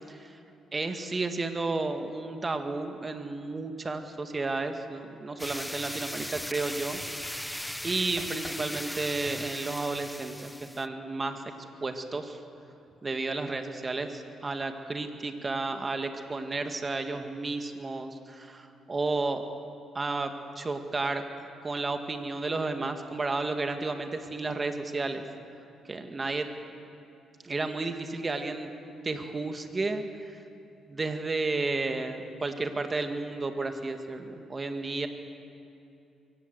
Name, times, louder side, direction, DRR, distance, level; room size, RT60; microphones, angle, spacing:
voice 1, 0.7-7.0 7.8-11.5 11.8-12.4 13.0-19.4 19.9-21.2 21.6-25.2 25.9-26.5 27.4-28.7 29.0-30.4 30.9-35.1, right 3 dB, 30° right, 6 dB, 1.9 m, -32 dB
sound 1, 5.4-10.9, equal, 5° left, 0.5 m, -38 dB
23.0 x 17.0 x 8.1 m, 2.7 s
cardioid pair, 90°, 0 cm